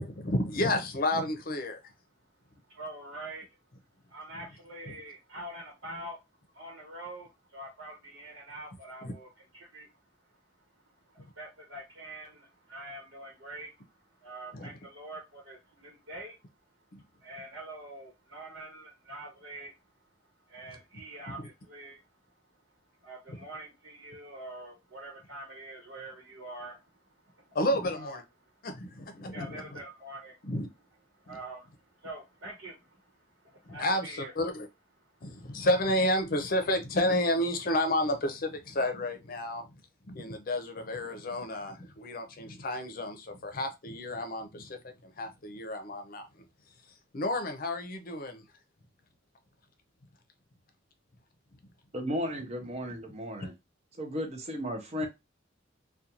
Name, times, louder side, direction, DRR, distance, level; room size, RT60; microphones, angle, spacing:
voice 1, 0.0-1.8 4.9-5.0 9.0-9.1 14.5-14.8 21.3-21.4 23.3-23.4 27.5-28.2 28.6-29.8 30.4-30.7 33.6-34.7 35.2-39.7 40.1-46.3 47.1-48.4, left 1 dB, 50° left, 0.6 m, -31 dB
voice 2, 2.7-3.4 4.1-6.2 6.5-9.3 9.5-9.9 11.1-13.8 14.1-16.4 17.2-19.7 20.5-22.0 23.0-26.8 27.3-27.6 27.9-28.2 29.3-30.4 31.2-31.7 32.0-33.1 33.4-34.3 35.2-35.4, right 1 dB, 90° right, 1.0 m, -45 dB
voice 3, 51.9-53.5 54.0-55.1, equal, 35° right, 0.6 m, -34 dB
2.5 x 2.2 x 2.8 m
head